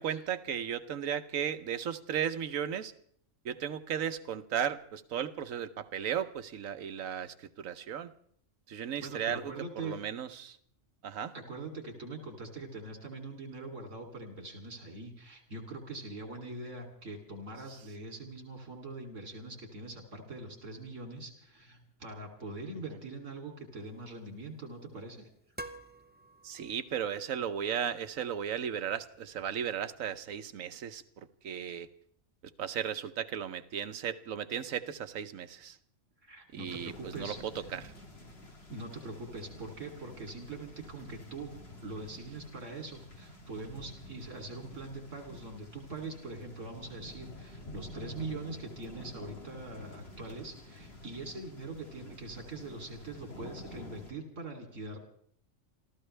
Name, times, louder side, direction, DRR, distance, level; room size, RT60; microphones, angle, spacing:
voice 1, 0.0-2.9 3.4-8.1 8.7-10.6 11.0-11.3 22.9-23.0 26.4-31.9 32.6-35.8 36.5-37.9, right 8 dB, 90° right, 11 dB, 1.3 m, -35 dB
voice 2, 9.0-10.0 11.3-25.3 36.2-37.7 38.7-55.0, right 2 dB, 65° right, 3 dB, 3.4 m, -43 dB
sound 1, 23.8-29.6, right 1 dB, 10° right, 0.5 m, -52 dB
sound 2, 36.7-54.1, left 2 dB, 50° left, 2.6 m, -49 dB
28.0 x 14.5 x 3.3 m, 0.62 s
omnidirectional pair, 1.4 m